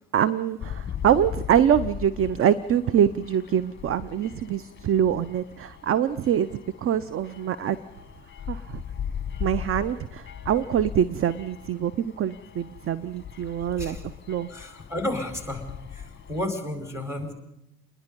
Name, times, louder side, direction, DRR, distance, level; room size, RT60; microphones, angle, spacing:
voice 1, 0.1-7.8 8.5-8.8 9.4-14.0 14.3-14.5, right 9 dB, 30° right, 17 dB, 0.7 m, -24 dB
sound 1, 0.6-16.5, left 8 dB, 25° left, 1.4 m, -39 dB
voice 2, 14.5-15.6 15.9-17.3, left 1 dB, 5° right, 5 dB, 4.8 m, -32 dB
28.0 x 21.0 x 5.4 m, 0.90 s
figure-of-eight pair, 65°, 45 cm